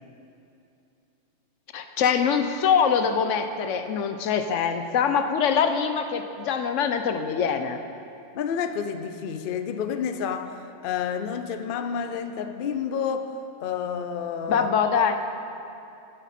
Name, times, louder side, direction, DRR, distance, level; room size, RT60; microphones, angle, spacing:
voice 1, 1.7-7.8 14.5-15.2, left 7 dB, 80° left, 8 dB, 1.0 m, -23 dB
voice 2, 8.3-13.3 13.6-14.7, left 7 dB, 55° left, 8 dB, 0.7 m, -30 dB
14.0 x 9.1 x 4.2 m, 2.7 s
omnidirectional pair, 1.3 m